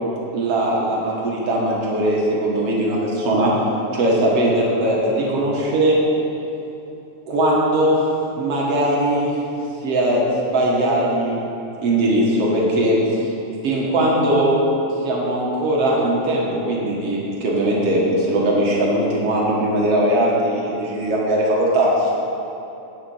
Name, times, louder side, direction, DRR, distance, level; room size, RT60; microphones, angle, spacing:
voice 1, 0.3-3.5 3.9-6.0 7.3-8.0 8.4-9.3 9.8-11.4 11.8-13.3 13.6-14.6 15.0-22.1, right 1 dB, 55° right, -4 dB, 2.3 m, -19 dB
9.8 x 7.4 x 5.5 m, 2.9 s
omnidirectional pair, 3.5 m